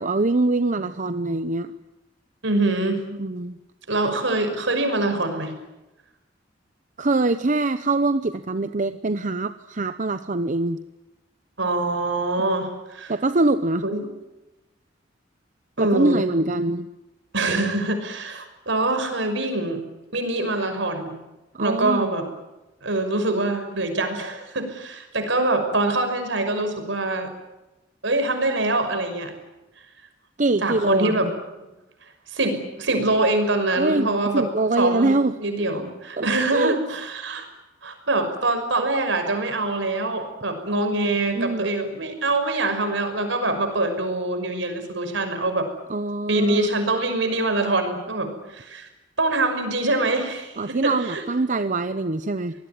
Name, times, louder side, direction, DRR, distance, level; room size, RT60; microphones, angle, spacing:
voice 1, 0.0-1.7 3.2-3.6 7.0-10.8 12.4-12.5 13.1-13.8 15.8-16.9 21.5-22.1 30.4-31.3 33.8-34.1 34.3-35.4 36.2-36.8 41.0-41.7 45.9-46.7 50.6-52.5, right 2 dB, 40° right, 11 dB, 0.8 m, -24 dB
voice 2, 2.4-3.0 3.9-5.5 11.6-13.1 13.8-14.0 15.8-16.2 17.3-19.8 20.1-21.1 21.6-22.2 22.8-27.3 28.0-29.3 30.6-31.3 31.6-31.7 32.3-34.5 34.8-35.1 35.4-37.5 37.8-45.7 46.3-48.9 49.2-51.3, right 2 dB, 70° right, 7 dB, 5.9 m, -24 dB
26.0 x 20.0 x 9.5 m, 1.0 s
head